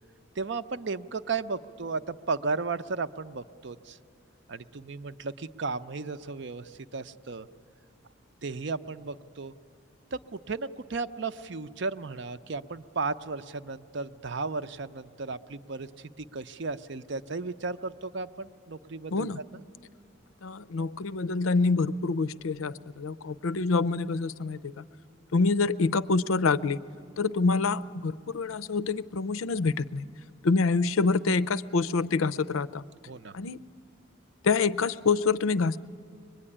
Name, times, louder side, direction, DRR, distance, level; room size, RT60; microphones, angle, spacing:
voice 1, 0.4-4.0 4.5-7.5 8.4-9.5 10.1-19.3 19.5-19.6 33.1-33.3, right 4 dB, 60° right, 12 dB, 0.6 m, -34 dB
voice 2, 20.4-24.8 25.3-26.8 27.2-30.0 30.4-32.8 33.3-33.6 34.4-35.8, left 4 dB, 85° left, 17 dB, 0.5 m, -26 dB
24.0 x 21.5 x 9.9 m, 2.5 s
head